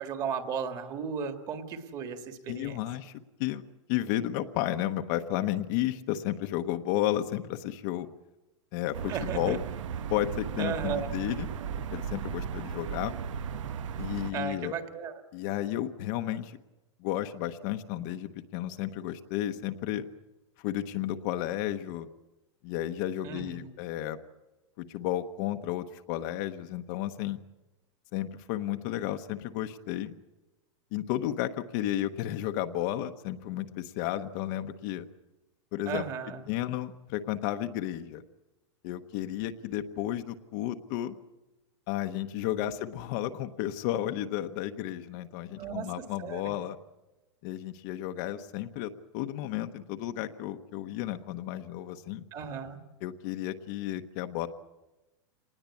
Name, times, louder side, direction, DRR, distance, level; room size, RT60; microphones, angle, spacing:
voice 1, 0.0-2.8 9.1-9.6 10.6-11.1 14.3-15.2 23.2-23.7 35.9-36.4 42.6-42.7 45.6-46.5 52.3-52.8, right 7 dB, 25° right, 8 dB, 1.9 m, -35 dB
voice 2, 2.5-3.1 3.4-3.6 3.9-8.1 8.7-9.6 10.1-11.5 11.9-13.1 14.0-14.7 15.3-16.6 17.0-20.0 20.6-22.1 22.6-24.2 24.8-27.4 28.1-30.1 30.9-35.0 35.7-36.1 36.5-38.2 38.8-41.1 41.9-46.8 47.4-52.2 53.0-54.5, left 13 dB, 40° left, 7 dB, 1.0 m, -32 dB
sound 1, 8.9-14.3, right 7 dB, 85° right, 1.2 m, -36 dB
26.0 x 20.0 x 8.5 m, 1.0 s
supercardioid pair, 170°, 16 cm